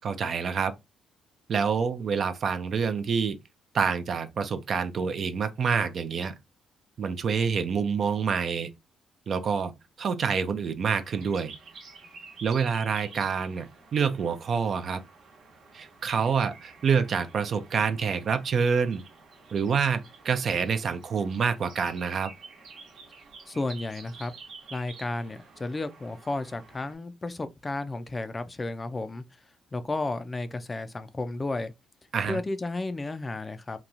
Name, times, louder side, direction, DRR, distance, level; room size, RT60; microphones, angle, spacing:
voice 1, 0.0-0.7 1.5-3.4 3.7-6.3 7.0-8.7 9.3-9.7 10.0-11.5 12.4-15.0 15.7-19.0 19.5-22.3 32.1-32.4, right 6 dB, 55° right, 0.4 m, -27 dB
sound 1, 10.8-26.9, right 4 dB, 70° right, 1.0 m, -50 dB
voice 2, 23.5-24.4 24.7-29.2 29.7-31.7 32.3-33.8, left 2 dB, 25° left, 0.4 m, -33 dB
2.9 x 2.3 x 2.5 m
cardioid pair, 90°, 0 cm